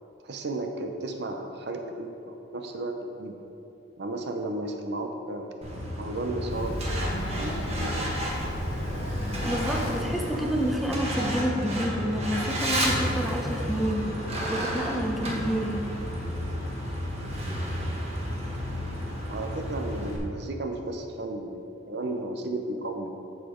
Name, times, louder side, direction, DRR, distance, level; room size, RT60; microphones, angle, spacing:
voice 1, 0.2-3.4 4.0-5.5 6.0-6.8 7.4-8.1 19.3-23.1, right 2 dB, 60° right, 4 dB, 0.7 m, -34 dB
Truck, 5.6-20.2, equal, 35° right, 1.3 m, -31 dB
Run, 6.5-11.3, equal, 90° left, 1.0 m, -36 dB
voice 2, 9.4-14.0 14.5-15.8, equal, ahead, 0 dB, 0.7 m, -29 dB
8.6 x 7.1 x 3.8 m, 3.0 s
head